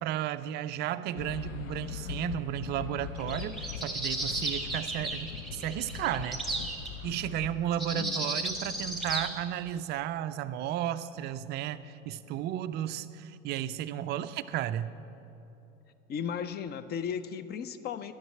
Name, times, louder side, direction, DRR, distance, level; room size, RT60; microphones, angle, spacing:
voice 1, 0.0-6.4 7.0-14.9, right 11 dB, 30° right, 13 dB, 0.4 m, -33 dB
sound 1, 1.2-7.6, left 7 dB, 75° left, 0.7 m, -41 dB
sound 2, 3.2-6.9 7.8-9.3, right 2 dB, ahead, 1.9 m, -34 dB
voice 2, 7.9-8.2 16.1-18.1, left 7 dB, 25° left, 13 dB, 0.5 m, -35 dB
12.0 x 6.5 x 8.5 m, 3.0 s
figure-of-eight pair, 75°, 39 cm